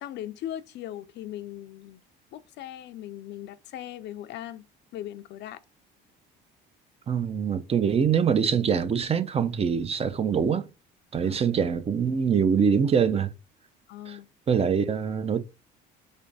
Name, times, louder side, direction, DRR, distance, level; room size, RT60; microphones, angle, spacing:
voice 1, 0.0-2.0 2.3-5.6 11.2-11.4 13.9-14.3, left 12 dB, 60° left, 0.5 m, -39 dB
voice 2, 7.1-10.7 11.1-13.3 14.1-14.2 14.5-15.4, right 7 dB, 30° right, 0.5 m, -24 dB
3.4 x 2.6 x 3.9 m
supercardioid pair, 90°, 20 cm